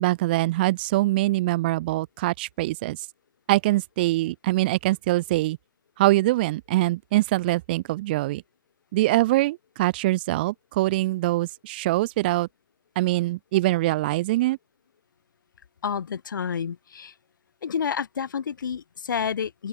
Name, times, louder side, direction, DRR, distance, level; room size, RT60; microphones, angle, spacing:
voice 1, 0.0-3.0 3.5-5.6 6.0-8.4 8.9-12.5 12.9-14.6, right 18 dB, 30° right, 4.6 m, -23 dB
voice 2, 15.8-17.1 17.6-19.7, left 7 dB, 75° left, 7.2 m, -29 dB
open air
hypercardioid pair, 175°, 11 cm